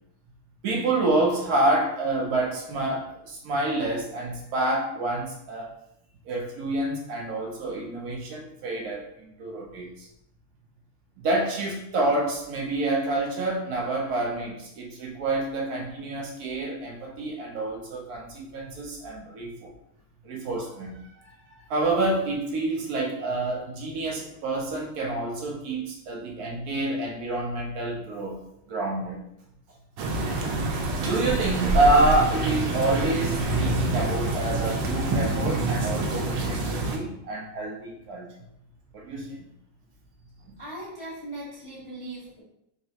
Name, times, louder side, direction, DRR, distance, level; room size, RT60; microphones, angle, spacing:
voice 1, 0.6-5.7 6.3-10.1 11.2-19.7 20.2-28.4 28.7-29.2 31.0-38.3 38.9-39.5 40.5-40.6, right 2 dB, 65° right, -1 dB, 1.0 m, -28 dB
sound 1, 30.0-37.0, right 2 dB, 85° right, 1.4 m, -26 dB
voice 2, 40.6-42.4, right 1 dB, 45° left, -7 dB, 0.4 m, -39 dB
4.0 x 3.2 x 2.7 m, 0.79 s
omnidirectional pair, 2.0 m